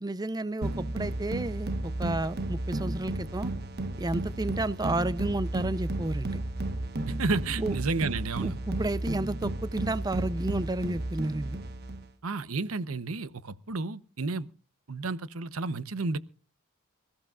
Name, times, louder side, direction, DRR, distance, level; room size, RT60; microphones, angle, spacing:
voice 1, 0.0-1.7 2.0-3.5 4.0-6.4 7.6-7.8 8.4-11.6, right 2 dB, 20° right, 0.6 m, -31 dB
sound 1, 0.6-12.1, right 2 dB, 50° right, 1.3 m, -33 dB
voice 2, 7.1-8.6 12.2-14.5 14.9-16.2, right 3 dB, 90° right, 0.9 m, -31 dB
26.0 x 15.0 x 2.5 m
head